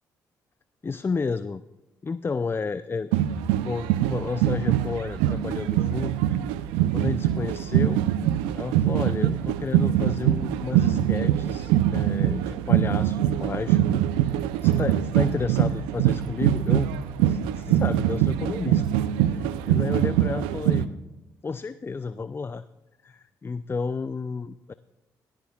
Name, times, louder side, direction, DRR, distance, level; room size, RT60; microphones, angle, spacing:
voice 1, 0.8-1.6 2.0-3.1 3.6-6.1 6.9-8.0 8.5-14.0 14.6-16.9 17.3-18.8 19.2-20.9 21.4-22.6 23.0-24.7, left 4 dB, 25° left, 14 dB, 0.4 m, -31 dB
sound 1, 3.1-20.8, right 12 dB, 85° right, 0.5 m, -23 dB
18.0 x 14.0 x 2.4 m, 1.0 s
hypercardioid pair, 50°, 9 cm